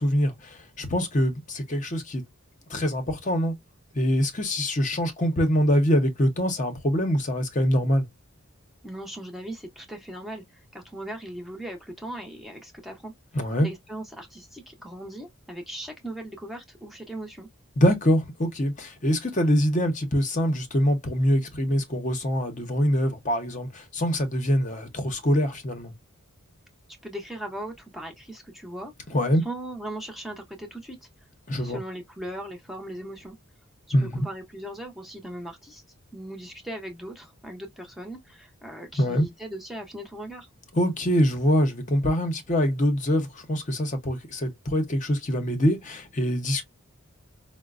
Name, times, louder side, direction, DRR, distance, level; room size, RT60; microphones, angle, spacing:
voice 1, 0.0-2.2 2.7-3.5 3.9-8.1 13.3-13.7 17.8-25.9 29.1-29.4 31.5-31.8 33.9-34.3 39.0-39.2 40.7-46.6, equal, 35° left, 0.7 m, -24 dB
voice 2, 8.8-13.1 13.6-17.5 27.0-28.9 29.4-31.0 31.6-33.4 34.0-35.8 36.1-40.5, right 1 dB, ahead, 0.6 m, -38 dB
4.8 x 2.0 x 2.4 m
head